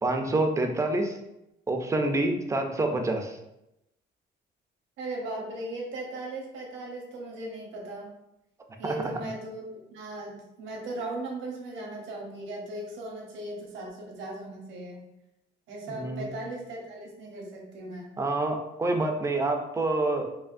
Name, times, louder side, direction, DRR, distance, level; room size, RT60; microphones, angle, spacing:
voice 1, 0.0-1.2 1.7-3.4 8.8-9.0 15.9-16.3 18.2-20.3, right 2 dB, 15° right, 4 dB, 0.4 m, -27 dB
voice 2, 5.0-8.1 8.8-9.6 9.9-15.0 15.7-18.1, right 2 dB, 80° right, -2 dB, 1.1 m, -37 dB
4.8 x 2.5 x 2.5 m, 0.88 s
cardioid pair, 155°, 19 cm